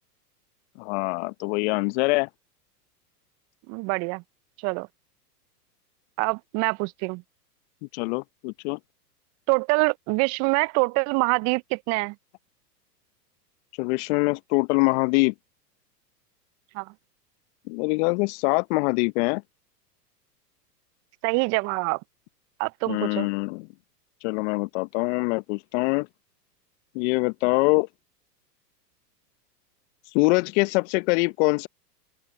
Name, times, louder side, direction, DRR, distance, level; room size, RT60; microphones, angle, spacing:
voice 1, 0.8-2.3 7.9-8.8 13.8-15.3 17.7-19.4 22.9-23.7 24.2-26.1 26.9-27.9 30.1-31.7, left 28 dB, 45° left, 1.0 m, -24 dB
voice 2, 3.7-4.2 4.6-4.9 6.2-7.2 9.5-12.1 16.7-16.9 21.2-22.0 22.6-23.3, right 30 dB, 35° right, 0.7 m, -25 dB
open air
hypercardioid pair, 100°, 49 cm